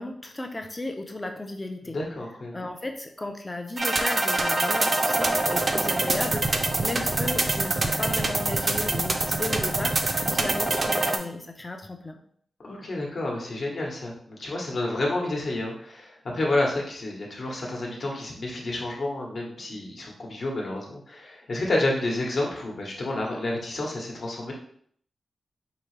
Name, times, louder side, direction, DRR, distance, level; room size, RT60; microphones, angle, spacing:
voice 1, 0.0-2.0 2.5-6.5 6.8-10.0 10.3-12.2, left 2 dB, 15° left, 5 dB, 0.5 m, -34 dB
voice 2, 1.8-2.6 12.6-24.5, left 2 dB, 50° left, -1 dB, 1.1 m, -30 dB
sound 1, 3.8-11.2, right 2 dB, 35° right, 0.4 m, -25 dB
4.8 x 2.9 x 3.1 m, 0.62 s
wide cardioid pair, 145°, 0 cm